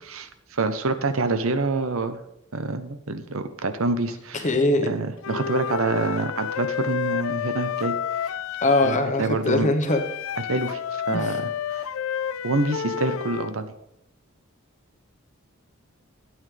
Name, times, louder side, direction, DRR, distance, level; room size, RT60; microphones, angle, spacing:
voice 1, 0.0-2.2 2.5-4.5 4.9-7.9 8.8-9.7 10.5-11.9 12.4-13.7, right 3 dB, 75° right, 10 dB, 0.8 m, -27 dB
voice 2, 4.4-4.9 8.6-10.0 11.1-11.3, left 2 dB, 35° left, 6 dB, 1.1 m, -21 dB
Wind instrument woodwind instrument, 5.2-9.0 9.9-13.5, left 8 dB, 65° left, 0.3 m, -30 dB
12.5 x 8.9 x 3.4 m, 0.81 s
head